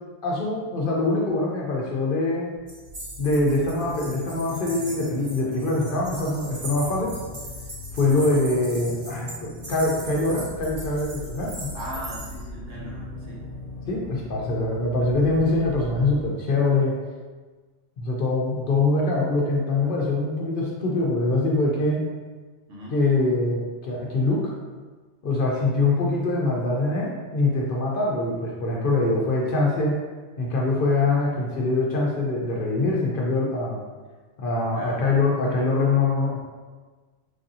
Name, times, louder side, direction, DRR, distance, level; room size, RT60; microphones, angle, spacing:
voice 1, 0.2-2.5 3.2-7.1 7.9-11.7 13.9-17.0 18.0-22.1 22.9-24.5 25.2-30.0 30.4-33.8 34.4-36.4, left 2 dB, 60° left, -3 dB, 0.6 m, -23 dB
sound 1, 2.6-16.3, left 2 dB, 90° left, 1.0 m, -40 dB
sound 2, 2.7-12.4, right 1 dB, 55° right, 1.1 m, -40 dB
voice 2, 11.7-13.4 22.7-23.0 34.8-35.0, right 1 dB, 90° right, -5 dB, 1.2 m, -38 dB
3.2 x 2.6 x 2.6 m, 1.4 s
omnidirectional pair, 1.2 m